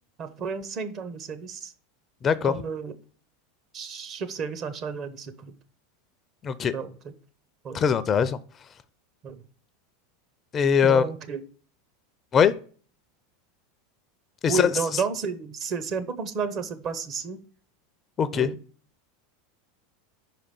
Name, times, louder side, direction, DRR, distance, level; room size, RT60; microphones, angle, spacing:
voice 1, 0.2-1.7 2.4-2.9 3.7-5.5 6.7-6.9 7.6-7.8 9.2-9.4 10.8-11.4 14.5-17.4 18.3-18.6, right 5 dB, 45° right, 10 dB, 1.0 m, -32 dB
voice 2, 2.2-2.5 6.4-6.7 7.7-8.4 10.5-11.0 12.3-12.5 14.4-14.7 18.2-18.5, left 7 dB, 30° left, 15 dB, 0.5 m, -21 dB
5.3 x 4.9 x 5.2 m, 0.42 s
hypercardioid pair, 90°, 0 cm